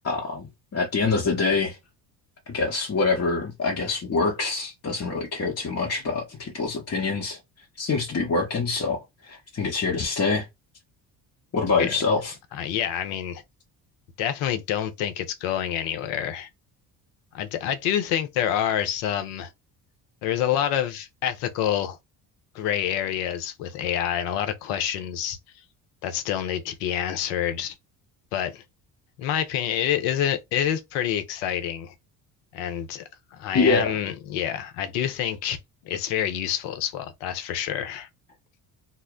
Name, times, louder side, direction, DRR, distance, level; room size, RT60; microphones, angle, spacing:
voice 1, 0.0-1.8 2.5-7.4 7.8-10.5 11.5-12.3 33.5-34.0, left 4 dB, 30° left, 0.8 m, -25 dB
voice 2, 12.5-13.4 14.2-16.5 17.3-19.5 20.2-22.0 22.5-25.6 26.0-27.8 28.3-28.6 29.2-31.9 32.5-33.0 33.3-35.6 35.8-38.1, left 10 dB, 75° left, 0.7 m, -27 dB
2.1 x 2.0 x 3.6 m
hypercardioid pair, 60°, 49 cm